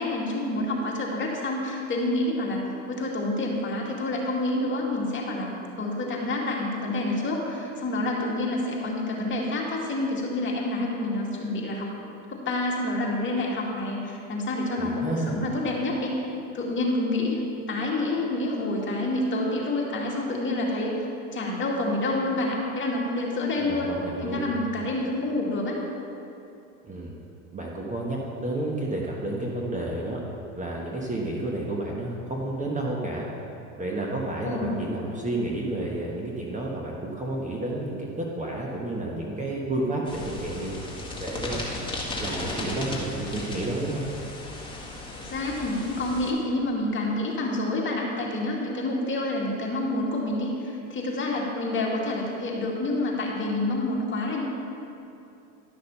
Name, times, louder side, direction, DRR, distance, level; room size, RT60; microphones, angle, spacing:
voice 1, 0.0-5.5 5.8-11.9 12.3-16.2 16.5-17.4 17.7-20.9 21.3-25.8 34.4-34.9 45.1-54.4, left 2 dB, 25° left, -2 dB, 2.2 m, -28 dB
voice 2, 14.8-15.4 23.6-24.5 26.8-27.1 27.5-30.2 30.6-33.3 33.8-40.8 41.2-41.6 42.2-44.0, right 2 dB, 15° right, -2 dB, 1.3 m, -31 dB
sound 1, 40.0-46.3, left 2 dB, 10° left, 2.1 m, -36 dB
12.0 x 6.4 x 5.7 m, 2.7 s
hypercardioid pair, 100°, 42 cm